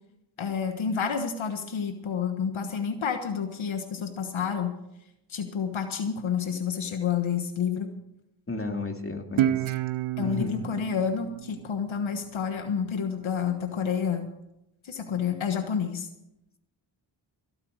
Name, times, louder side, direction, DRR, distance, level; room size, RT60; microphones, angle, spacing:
voice 1, 0.4-4.7 5.3-7.9 10.2-14.3 14.8-16.1, left 7 dB, 75° left, 6 dB, 1.4 m, -29 dB
voice 2, 8.5-9.7 10.2-10.6, left 2 dB, 25° left, 4 dB, 2.5 m, -32 dB
Guitar, 9.4-12.6, right 12 dB, 90° right, 0.6 m, -30 dB
16.5 x 8.9 x 6.3 m, 0.87 s
cardioid pair, 45°, 47 cm